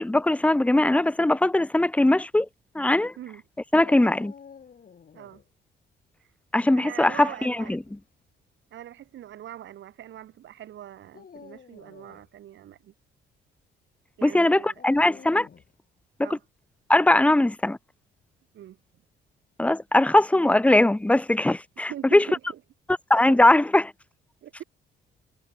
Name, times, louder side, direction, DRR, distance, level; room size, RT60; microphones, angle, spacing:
voice 1, 0.0-2.5 2.7-3.1 3.7-4.3 6.5-7.8 14.2-15.5 16.2-16.3 16.9-17.8 19.6-22.2 23.1-23.9, left 1 dB, 5° left, 0.7 m, -20 dB
Dog, 3.8-5.4 7.5-8.0 8.8-8.9 11.0-12.3 14.7-15.7, left 6 dB, 45° left, 6.9 m, -48 dB
voice 2, 6.7-7.8 8.7-12.9 14.2-14.8 16.2-16.4 18.5-18.8 21.9-22.6 23.3-23.4 24.4-24.6, right 12 dB, 70° right, 1.8 m, -42 dB
cardioid pair, 90°, 20 cm